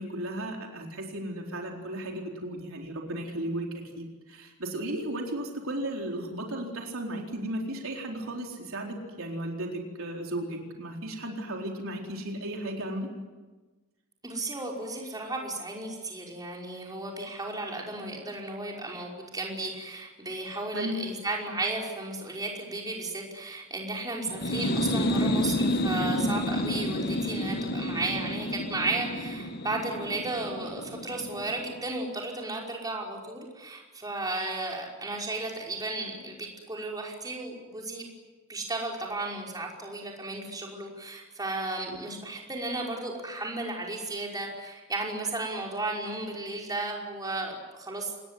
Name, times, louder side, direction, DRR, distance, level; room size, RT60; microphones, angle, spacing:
voice 1, 0.0-3.7 4.0-13.1 20.7-21.1 41.9-42.0, right 1 dB, 65° right, 1 dB, 4.2 m, -35 dB
voice 2, 14.2-38.1 38.5-48.2, right 2 dB, 15° right, -1 dB, 5.3 m, -34 dB
sound 1, 24.3-31.8, left 1 dB, 45° left, 1.5 m, -30 dB
27.0 x 20.5 x 9.7 m, 1.2 s
head